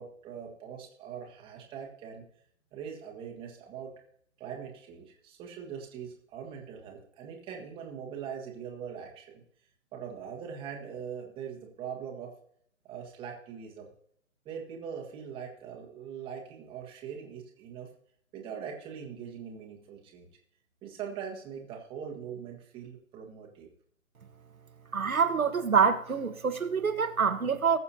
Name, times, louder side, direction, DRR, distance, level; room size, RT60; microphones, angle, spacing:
voice 1, 0.0-2.2 2.7-3.9 4.4-9.4 9.9-12.3 12.8-13.9 14.4-17.9 18.3-20.3 20.8-23.7, right 7 dB, 10° right, 1.5 m, -42 dB
voice 2, 24.9-27.8, right 6 dB, 85° right, 1.6 m, -26 dB
20.0 x 6.9 x 2.8 m
hypercardioid pair, 145°, 41 cm